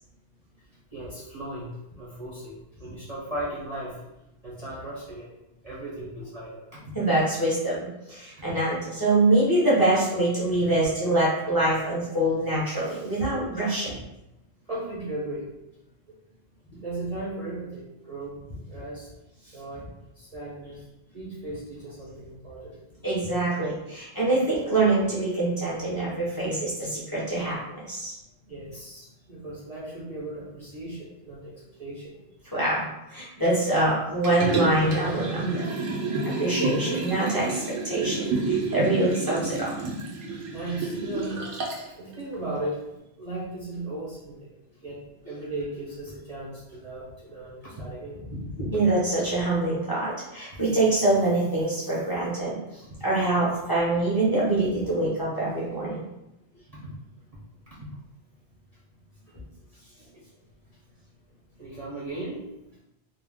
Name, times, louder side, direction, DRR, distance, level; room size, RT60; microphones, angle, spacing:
voice 1, 0.9-4.1 4.4-5.3 5.6-6.8 13.9-14.0 14.7-15.5 16.1-16.2 16.8-19.1 19.5-19.9 20.2-20.9 21.1-22.8 28.5-32.2 40.5-41.4 42.0-42.8 43.2-44.5 44.8-48.2 50.5-50.6 56.7-56.8 57.3-57.9 60.1-60.2 61.6-62.4, right 1 dB, 45° right, -7 dB, 0.6 m, -37 dB
voice 2, 6.9-13.9 23.0-28.2 32.5-32.8 33.1-35.7 36.4-39.7 48.6-56.0, right 2 dB, 25° left, -8 dB, 0.6 m, -25 dB
Liquid, 34.2-41.9 42.3-42.4, right 3 dB, 85° right, 0.9 m, -29 dB
2.3 x 2.1 x 3.4 m, 0.90 s
omnidirectional pair, 1.1 m